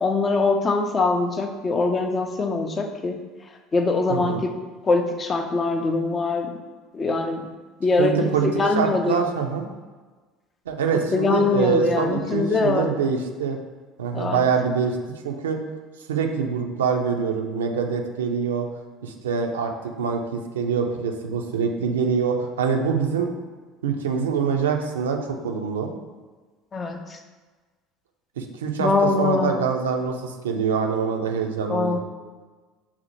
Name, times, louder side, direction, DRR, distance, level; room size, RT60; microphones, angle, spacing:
voice 1, 0.0-3.2 3.7-4.5 4.9-6.5 6.9-7.5 7.8-8.2 8.4-9.1 11.1-12.9 14.1-14.4 26.7-27.0 28.8-29.6 31.7-32.0, left 3 dB, 30° left, 5 dB, 0.4 m, -22 dB
voice 2, 4.1-4.4 8.0-9.7 10.7-13.6 14.0-15.0 15.2-15.6 16.1-18.7 19.0-19.7 20.0-23.3 23.8-25.9 28.4-32.0, right 6 dB, 75° right, 3 dB, 0.4 m, -24 dB
5.6 x 2.1 x 2.9 m, 1.4 s
figure-of-eight pair, 65°, 0 cm